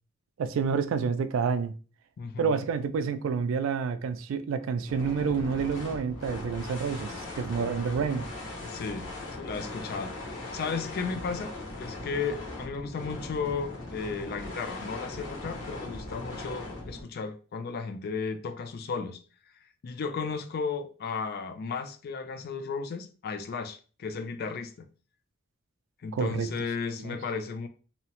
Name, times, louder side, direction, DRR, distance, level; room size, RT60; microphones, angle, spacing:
voice 1, 0.4-1.7 2.4-8.3 26.1-26.5 27.0-27.2, right 6 dB, 75° right, 0.3 m, -29 dB
voice 2, 2.2-2.5 8.6-9.1 9.3-11.5 11.8-19.2 19.8-24.9 26.0-27.7, left 5 dB, 50° left, 0.3 m, -34 dB
sound 1, 4.8-17.0, left 2 dB, 75° left, 0.9 m, -39 dB
2.7 x 2.0 x 2.9 m
head